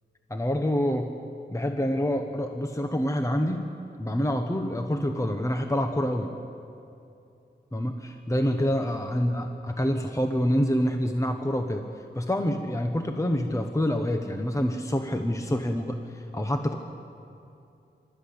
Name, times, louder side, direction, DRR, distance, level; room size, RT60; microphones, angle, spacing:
voice 1, 0.3-1.1 1.5-3.7 4.0-6.3 7.7-16.8, equal, 15° left, 5 dB, 1.1 m, -27 dB
25.5 x 13.5 x 8.6 m, 2.7 s
wide cardioid pair, 95°, 19 cm